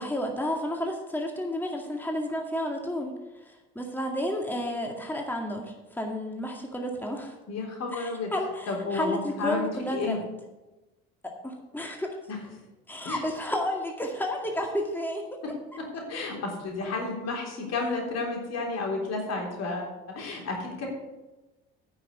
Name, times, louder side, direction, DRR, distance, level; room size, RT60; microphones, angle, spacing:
voice 1, 0.0-3.1 3.4-5.7 5.9-7.4 7.9-10.3 11.4-12.1 12.9-15.2, left 1 dB, 5° left, 1 dB, 2.1 m, -31 dB
voice 2, 7.5-8.3 8.7-10.2 12.3-12.4 13.1-13.2 15.9-20.9, left 3 dB, 60° left, 0 dB, 3.6 m, -32 dB
9.7 x 6.2 x 8.1 m, 1.1 s
hypercardioid pair, 65°, 29 cm